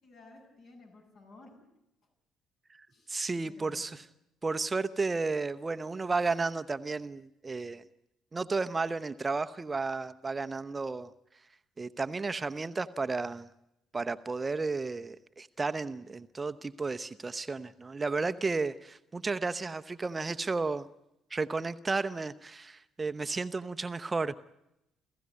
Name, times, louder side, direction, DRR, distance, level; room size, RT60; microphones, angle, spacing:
voice 1, 0.0-1.5 2.9-3.2 3.4-4.1, left 2 dB, 55° left, 1 dB, 7.9 m, -54 dB
voice 2, 2.8-4.0 4.4-7.8 8.3-11.1 11.8-13.5 13.9-20.9 21.3-24.3, right 3 dB, 25° right, 11 dB, 0.8 m, -33 dB
29.0 x 15.5 x 9.6 m, 0.86 s
figure-of-eight pair, 50°, 0 cm